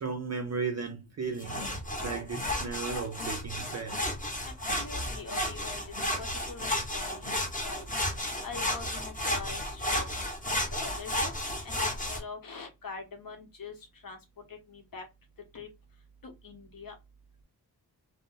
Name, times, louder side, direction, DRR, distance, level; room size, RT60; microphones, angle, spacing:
voice 1, 0.0-4.1, right 5 dB, 45° right, 0.5 m, -35 dB
sound 1, 1.4-12.2, left 1 dB, 20° left, 0.8 m, -33 dB
voice 2, 4.4-5.8 6.2-7.3 7.6-7.9 8.4-10.0 10.7-11.3 11.6-13.7 14.0-14.2 14.5-15.1 15.5-15.7 16.2-16.9, left 4 dB, 60° left, 0.9 m, -43 dB
2.4 x 2.0 x 3.8 m
wide cardioid pair, 155°, 39 cm